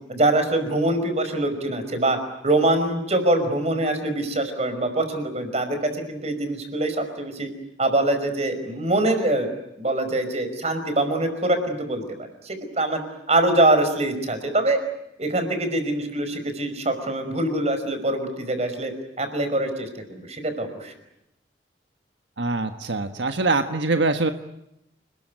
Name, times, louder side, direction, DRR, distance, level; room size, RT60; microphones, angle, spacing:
voice 1, 0.1-2.2 2.4-7.5 7.8-9.5 9.8-12.0 12.4-13.0 13.3-14.8 15.2-18.9 19.2-20.9, right 1 dB, 35° right, 8 dB, 5.2 m, -24 dB
voice 2, 22.4-24.3, right 3 dB, 85° right, 7 dB, 1.4 m, -23 dB
29.5 x 21.0 x 9.3 m, 0.85 s
head